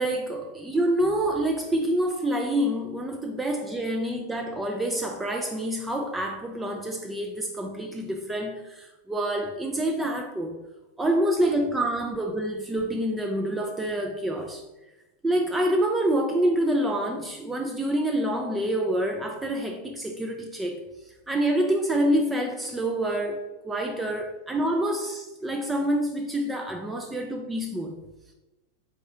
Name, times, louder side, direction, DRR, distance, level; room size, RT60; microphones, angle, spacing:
voice 1, 0.0-10.6 11.0-14.6 15.2-20.8 21.3-28.0, right 1 dB, 10° right, 2 dB, 0.4 m, -27 dB
4.2 x 3.7 x 3.3 m, 1.1 s
figure-of-eight pair, 90°, 0 cm